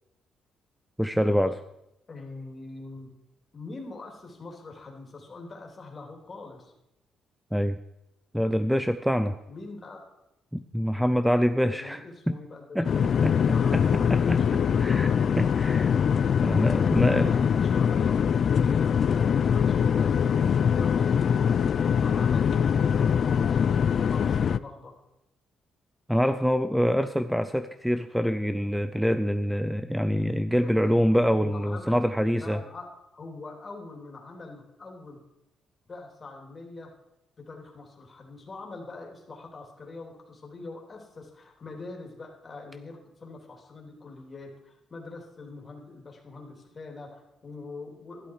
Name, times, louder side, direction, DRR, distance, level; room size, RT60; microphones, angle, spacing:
voice 1, 1.0-1.6 7.5-7.8 8.3-9.4 10.5-12.4 12.7-13.4 13.7-16.0 16.4-17.3 26.1-32.6, equal, ahead, 10 dB, 0.5 m, -25 dB
voice 2, 2.1-3.1 3.5-6.7 9.5-10.0 11.7-12.6 13.5-15.3 16.4-23.8 24.0-25.0 30.6-31.0 31.3-32.0 32.4-35.2 35.9-36.9 37.4-48.3, left 3 dB, 35° left, 1 dB, 3.1 m, -43 dB
sound 1, 12.9-24.6, left 7 dB, 55° left, 0.4 m, -23 dB
12.5 x 11.5 x 4.7 m, 0.88 s
cardioid pair, 90°, 0 cm